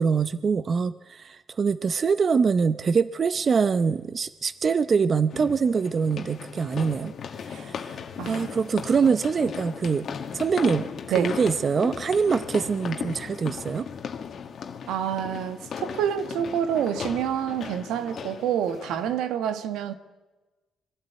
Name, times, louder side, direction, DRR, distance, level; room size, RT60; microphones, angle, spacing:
voice 1, 0.0-7.1 7.5-7.9 8.2-10.1 10.3-10.9 11.2-13.9, right 5 dB, 45° right, 0.7 m, -24 dB
sound 1, 3.3-3.4 5.3-19.2, left 7 dB, 55° left, 1.8 m, -37 dB
voice 2, 14.9-19.9, right 9 dB, 85° right, 1.5 m, -27 dB
24.5 x 13.0 x 9.4 m
cardioid pair, 90°, 0 cm